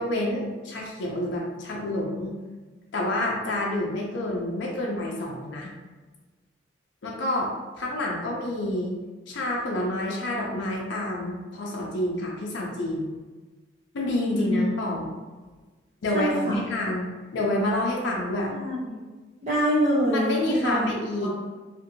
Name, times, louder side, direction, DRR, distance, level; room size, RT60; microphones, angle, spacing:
voice 1, 0.0-2.4 2.9-5.7 7.0-7.5 7.8-8.9 9.3-13.1 13.9-15.1 16.0-18.5 20.1-21.3, left 1 dB, 70° left, -2 dB, 0.5 m, -28 dB
voice 2, 14.3-14.7 16.1-16.7 18.5-19.0 19.4-20.3 20.6-20.9 21.2-21.3, equal, 40° right, -9 dB, 0.6 m, -25 dB
2.7 x 2.5 x 2.6 m, 1.3 s
head